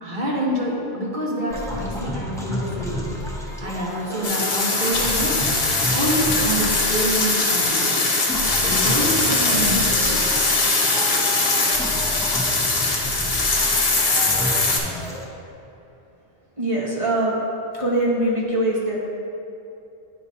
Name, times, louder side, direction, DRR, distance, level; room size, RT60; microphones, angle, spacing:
voice 1, 0.0-3.1 3.6-5.4 5.9-8.2 8.6-10.3, equal, 50° right, -5 dB, 1.5 m, -27 dB
sound 1, 1.5-15.2, equal, 5° left, 0.6 m, -31 dB
sound 2, 4.2-14.8, left 3 dB, 65° left, 1.1 m, -21 dB
voice 2, 16.6-17.3 17.8-19.0, right 1 dB, 30° right, -6 dB, 1.2 m, -22 dB
9.9 x 4.8 x 2.8 m, 2.7 s
omnidirectional pair, 1.1 m